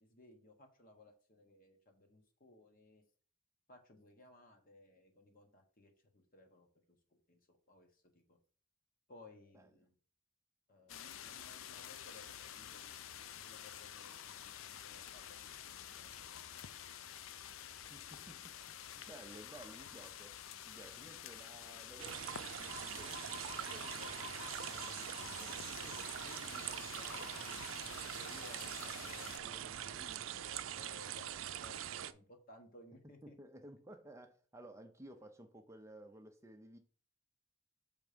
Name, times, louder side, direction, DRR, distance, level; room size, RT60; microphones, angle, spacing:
voice 1, 0.0-3.0 3.7-6.7 7.3-8.4 9.1-9.9 10.7-16.5 23.6-33.4, left 1 dB, 45° left, 1.3 m, -60 dB
sound 1, 10.9-29.4, left 9 dB, 90° left, 0.5 m, -49 dB
voice 2, 17.9-20.4 20.7-23.4 25.4-25.5 33.2-36.8, right 1 dB, 15° right, 0.6 m, -55 dB
sound 2, 22.0-32.1, right 10 dB, 85° right, 0.4 m, -43 dB
7.0 x 3.5 x 5.0 m
head